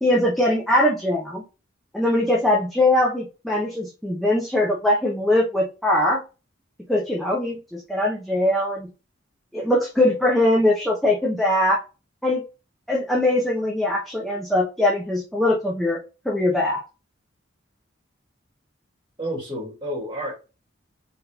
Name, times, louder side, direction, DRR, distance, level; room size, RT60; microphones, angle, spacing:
voice 1, 0.0-1.4 1.9-6.2 6.9-8.9 9.5-11.8 12.2-12.4 12.9-16.0 16.2-16.8, left 1 dB, ahead, -4 dB, 0.9 m, -21 dB
voice 2, 19.2-20.4, equal, 25° right, -4 dB, 2.3 m, -30 dB
4.2 x 4.0 x 2.8 m, 0.30 s
head